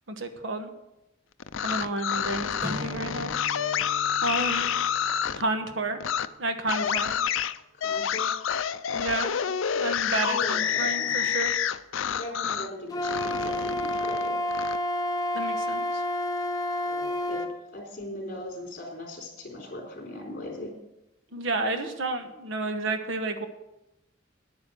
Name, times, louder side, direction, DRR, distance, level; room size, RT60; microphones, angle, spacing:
voice 1, 0.1-0.7 1.6-3.3 4.2-4.7 5.4-6.0 6.4-7.2 8.9-9.3 9.7-11.5 15.3-16.0 21.3-23.5, right 2 dB, 65° right, 8 dB, 1.2 m, -31 dB
sound 1, 1.4-5.4 6.0-6.3 6.7-12.7 13.0-14.8, left 8 dB, 75° left, 0.5 m, -28 dB
Strum, 2.6-7.3, equal, 20° right, 1.7 m, -42 dB
voice 2, 7.7-8.6 9.4-9.5 10.1-11.3 12.1-14.4 16.8-20.7, left 1 dB, 45° left, 1 dB, 3.9 m, -39 dB
Wind instrument woodwind instrument, 12.9-17.5, left 1 dB, 20° left, 0.7 m, -29 dB
10.0 x 9.2 x 6.9 m, 0.92 s
head